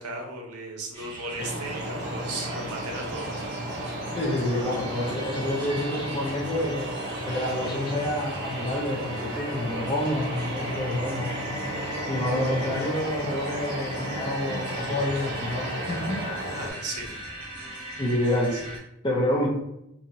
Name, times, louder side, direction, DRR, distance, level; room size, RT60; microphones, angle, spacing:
voice 1, 0.0-3.5 3.8-4.0 16.6-17.2 18.5-18.6, right 2 dB, 85° right, 0 dB, 0.7 m, -36 dB
sound 1, 0.9-18.8, right 1 dB, 20° right, 0.8 m, -39 dB
sound 2, 1.4-16.7, right 1 dB, 50° right, 0.5 m, -34 dB
voice 2, 4.2-6.9 7.2-11.3 11.5-16.2 18.0-18.6 19.0-19.5, left 1 dB, 20° left, -3 dB, 0.4 m, -28 dB
2.7 x 2.4 x 2.8 m, 0.83 s
head